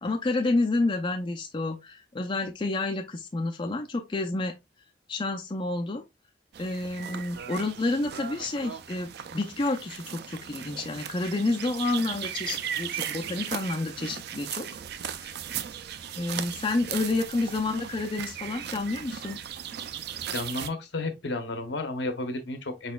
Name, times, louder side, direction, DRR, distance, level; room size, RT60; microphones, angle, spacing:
voice 1, 0.0-4.6 5.1-6.0 6.6-14.7 15.1-15.4 16.2-19.4, left 2 dB, 25° left, 0.5 m, -29 dB
sound 1, 6.5-20.7, right 9 dB, 60° right, 0.4 m, -37 dB
voice 2, 20.3-22.9, left 2 dB, 70° left, 0.9 m, -32 dB
4.4 x 4.0 x 2.2 m
head